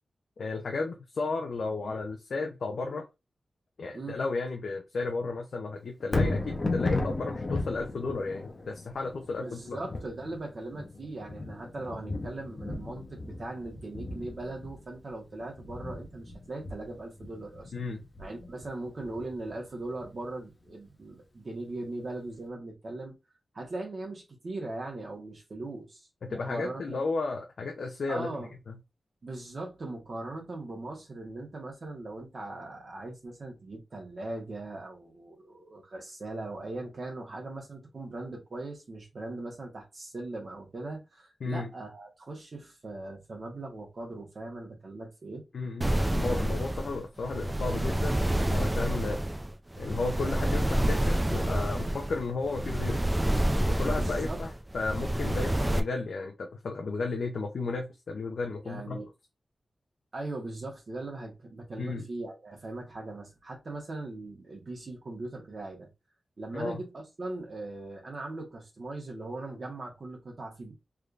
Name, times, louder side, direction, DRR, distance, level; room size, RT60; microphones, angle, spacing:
voice 1, 0.4-3.0 3.8-9.8 17.7-18.0 26.2-28.4 28.7-28.8 41.4-41.7 45.5-48.2 48.5-49.2 49.8-53.1 53.7-59.0 61.8-62.1 66.5-66.8, left 3 dB, 80° left, 0.6 m, -33 dB
Thunder, 6.0-20.2 20.7-20.8, left 2 dB, 40° left, 0.8 m, -35 dB
voice 2, 9.4-17.7 18.2-23.1 23.5-26.0 26.3-27.0 28.1-28.5 29.2-45.4 53.9-54.4 58.6-59.1 60.1-65.9 66.4-70.7, right 2 dB, 55° right, 1.4 m, -39 dB
sound 1, 45.8-55.8, right 1 dB, 20° right, 0.5 m, -28 dB
3.5 x 3.2 x 2.5 m
wide cardioid pair, 90°, 0 cm